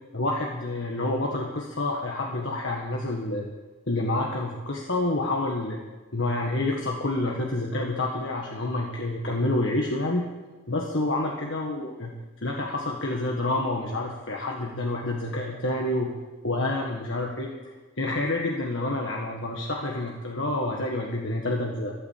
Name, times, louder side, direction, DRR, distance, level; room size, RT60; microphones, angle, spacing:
voice 1, 0.1-3.5 3.9-5.8 6.1-10.3 10.7-12.1 12.4-16.1 16.4-21.9, left 2 dB, 70° left, -1 dB, 1.7 m, -28 dB
13.5 x 12.0 x 7.5 m, 1.2 s
head